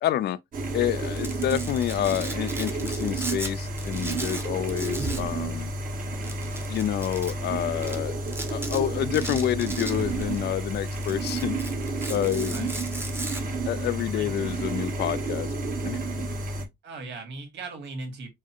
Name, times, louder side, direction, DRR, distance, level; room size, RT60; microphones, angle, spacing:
voice 1, 0.0-0.4 0.7-5.7 6.7-8.2 8.5-11.6 12.1-12.7 13.6-15.5 15.8-16.3, left 12 dB, 65° left, 0.4 m, -28 dB
sound 1, 0.5-16.7, right 2 dB, 45° right, 1.4 m, -31 dB
Domestic sounds home sounds, 1.0-3.5 3.8-5.3 5.6-5.7 6.2-7.3 7.8-7.9 8.3-8.8 9.1-10.4 10.7-13.4, right 2 dB, 10° right, 0.9 m, -37 dB
voice 2, 12.4-12.8 14.1-14.5 16.8-18.3, right 3 dB, 75° right, 1.8 m, -38 dB
4.7 x 2.1 x 4.4 m
cardioid pair, 130°, 19 cm